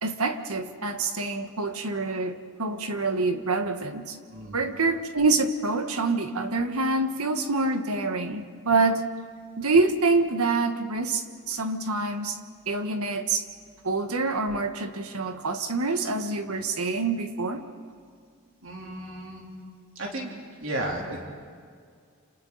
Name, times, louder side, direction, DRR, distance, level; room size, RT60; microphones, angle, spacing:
voice 1, 0.0-4.2 4.5-9.0 9.6-12.4 12.7-13.4 13.8-17.6, right 3 dB, 90° right, 7 dB, 1.5 m, -26 dB
voice 2, 4.3-4.6 18.6-19.5 20.0-20.3 20.6-21.3, right 1 dB, 65° right, -1 dB, 3.6 m, -33 dB
29.0 x 28.0 x 4.1 m, 2.1 s
head